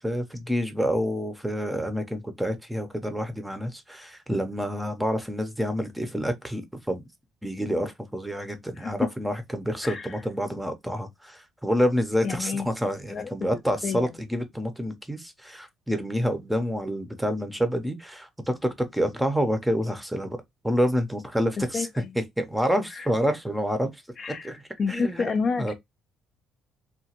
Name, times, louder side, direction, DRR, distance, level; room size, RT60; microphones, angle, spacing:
voice 1, 0.0-6.6 6.9-7.0 7.4-20.4 20.6-21.9 22.2-24.0 24.4-24.6 24.9-25.3 25.6-25.7, equal, 5° right, 0.6 m, -28 dB
voice 2, 12.2-12.7 13.1-13.5 13.8-14.1 21.6-22.1 22.9-23.1 24.2-24.5 24.8-25.7, left 5 dB, 45° left, 0.4 m, -29 dB
2.9 x 2.2 x 2.8 m
cardioid pair, 105°, 0 cm